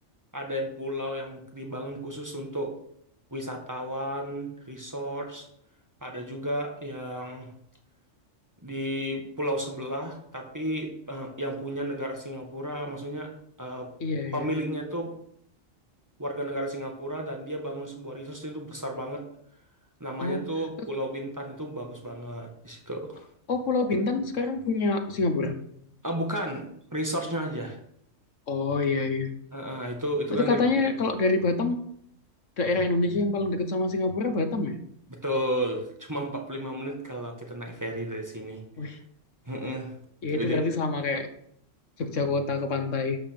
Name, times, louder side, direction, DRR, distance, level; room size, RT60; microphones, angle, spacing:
voice 1, 0.3-2.8 3.3-5.5 6.0-7.5 8.6-13.3 13.6-13.9 14.3-15.1 16.2-19.2 20.0-23.2 26.0-27.8 29.5-30.6 35.1-39.0 39.4-39.9 40.3-40.6, equal, 15° right, 2 dB, 1.8 m, -33 dB
voice 2, 14.0-14.4 20.2-20.4 23.5-25.6 28.5-29.3 30.3-31.8 32.6-34.7 38.8-39.0 40.2-41.3 42.0-43.2, left 3 dB, 70° left, 7 dB, 1.5 m, -26 dB
12.0 x 5.6 x 6.9 m, 0.68 s
omnidirectional pair, 1.3 m